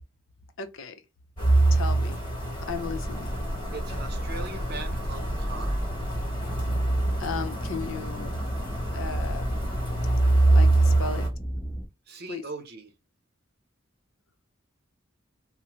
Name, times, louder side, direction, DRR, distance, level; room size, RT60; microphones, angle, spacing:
voice 1, 0.6-0.9 1.6-2.2 2.7-3.4 7.2-8.3 8.9-9.6 10.5-11.2 12.3-12.4, left 5 dB, 85° left, 0.6 m, -35 dB
sound 1, 1.4-11.3, right 2 dB, 25° left, 1.1 m, -25 dB
sound 2, 2.7-11.9, equal, 5° left, 0.6 m, -36 dB
voice 2, 3.7-5.8 12.1-12.9, right 3 dB, 55° right, 0.7 m, -40 dB
2.7 x 2.1 x 3.0 m
head